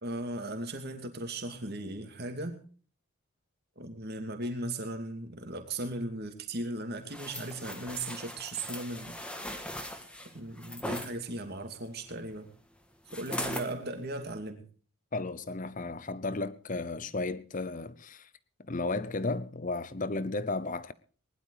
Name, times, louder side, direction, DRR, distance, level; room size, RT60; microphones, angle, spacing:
voice 1, 0.0-2.6 3.8-9.2 10.3-12.5 13.1-14.6, right 2 dB, 45° right, 2.6 m, -37 dB
sound 1, 7.1-11.1 13.1-13.7 14.2-14.4, left 1 dB, 5° left, 1.6 m, -39 dB
voice 2, 15.1-18.3 18.6-20.9, left 3 dB, 35° left, 0.7 m, -34 dB
20.0 x 11.5 x 4.8 m
head